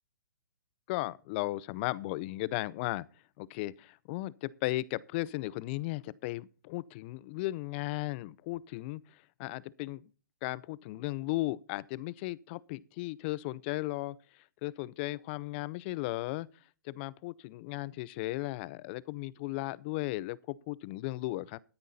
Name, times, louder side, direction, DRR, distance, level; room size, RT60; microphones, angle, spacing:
voice 1, 0.9-3.1 3.4-10.0 10.4-14.2 14.6-16.5 16.8-21.6, left 19 dB, 35° left, 0.5 m, -36 dB
13.0 x 9.7 x 4.1 m
hypercardioid pair, 140°, 11 cm